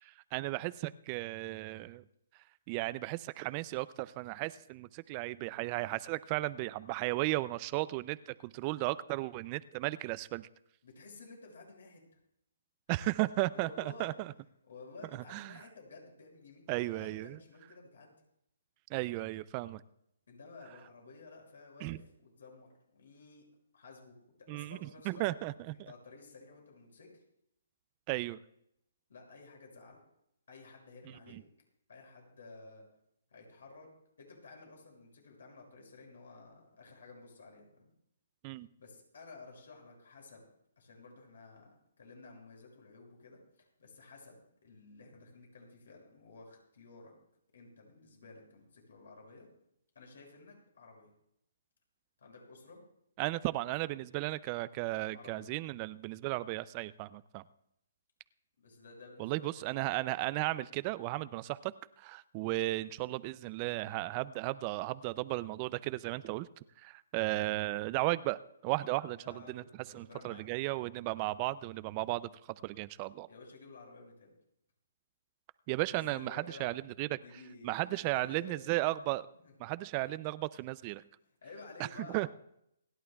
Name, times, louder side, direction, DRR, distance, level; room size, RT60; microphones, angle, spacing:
voice 1, 0.0-2.0 2.7-10.5 12.9-14.3 15.3-15.6 16.7-17.4 18.9-19.8 21.8-22.0 24.5-25.7 28.1-28.4 38.4-38.7 53.2-57.4 59.2-66.5 66.8-69.6 69.9-72.3 72.6-73.3 75.7-77.2 77.6-79.3 79.6-81.0 82.1-82.3, right 19 dB, 30° right, 16 dB, 0.4 m, -35 dB
voice 2, 10.8-12.0 13.5-14.1 14.7-18.1 20.3-23.4 23.7-25.3 25.7-27.2 29.1-30.0 30.5-31.4 31.9-32.8 33.3-33.9 34.2-37.9 38.8-40.4 40.8-47.1 47.5-49.5 49.9-51.1 52.2-52.8 55.1-55.5 58.6-59.5 62.8-63.1 69.2-70.4 70.7-70.8 73.3-74.3 75.9-76.7 77.2-78.8 79.4-79.5 81.4-82.3, left 3 dB, 75° left, 0 dB, 6.4 m, -53 dB
28.5 x 11.0 x 2.3 m, 0.76 s
hypercardioid pair, 155°, 0 cm